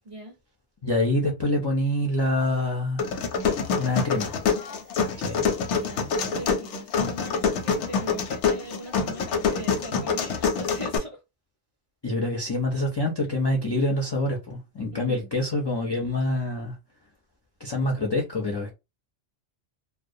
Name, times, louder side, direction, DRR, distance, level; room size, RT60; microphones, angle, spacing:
voice 1, 0.0-0.4 5.7-11.2 14.9-15.3, right 1 dB, 45° right, 0.4 m, -40 dB
voice 2, 0.8-3.1 3.7-4.3 5.2-5.4 12.0-16.8 17.6-18.7, left 1 dB, 45° left, 0.3 m, -26 dB
sound 1, 3.0-11.0, left 5 dB, 85° left, 0.9 m, -26 dB
2.3 x 2.1 x 2.6 m
omnidirectional pair, 1.2 m